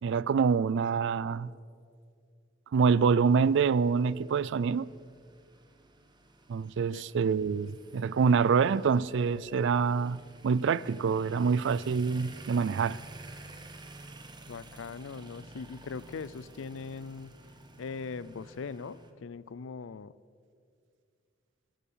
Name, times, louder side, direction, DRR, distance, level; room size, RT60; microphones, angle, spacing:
voice 1, 0.0-1.5 2.7-4.9 6.5-13.0, right 5 dB, 65° right, 0.4 m, -26 dB
sound 1, 3.3-19.1, right 2 dB, 25° right, 1.1 m, -51 dB
voice 2, 14.5-17.3 17.8-20.1, left 5 dB, 75° left, 0.5 m, -40 dB
15.5 x 13.0 x 5.6 m
head